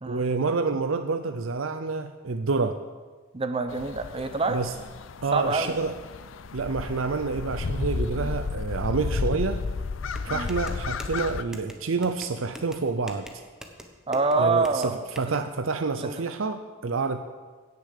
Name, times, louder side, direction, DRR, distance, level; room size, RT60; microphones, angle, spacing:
voice 1, 0.1-2.8 4.5-4.7 5.2-5.9 6.5-9.6 10.2-13.3 14.4-17.2, right 4 dB, 90° right, 9 dB, 0.6 m, -28 dB
voice 2, 3.3-4.6 5.3-5.7 8.2-8.3 10.3-10.5 14.1-15.0 15.3-15.4 16.0-16.2, right 3 dB, 30° right, 8 dB, 0.8 m, -26 dB
sound 1, 3.7-11.4, left 4 dB, 80° left, 0.6 m, -32 dB
Pounding Side Tire, 10.1-15.4, equal, 5° right, 1.1 m, -44 dB
17.0 x 6.8 x 6.7 m, 1.4 s
head